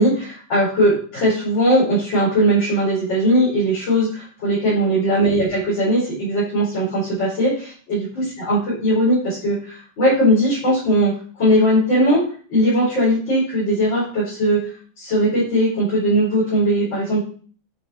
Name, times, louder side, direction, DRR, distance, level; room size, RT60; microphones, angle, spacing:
voice 1, 0.0-12.2 12.5-17.2, equal, 65° left, -9 dB, 5.7 m, -19 dB
10.0 x 6.6 x 5.0 m, 0.43 s
omnidirectional pair, 2.2 m